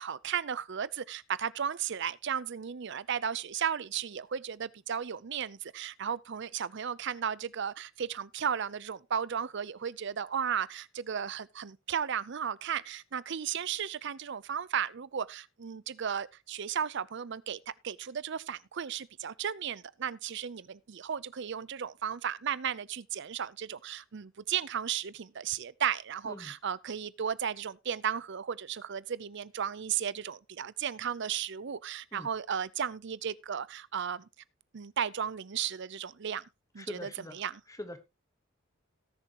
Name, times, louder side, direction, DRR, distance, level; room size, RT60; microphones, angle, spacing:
voice 1, 0.0-34.3 34.7-36.4 36.7-37.5, right 8 dB, 60° right, 0.6 m, -35 dB
voice 2, 36.8-38.0, left 1 dB, 15° left, 1.2 m, -44 dB
18.0 x 6.9 x 2.9 m
head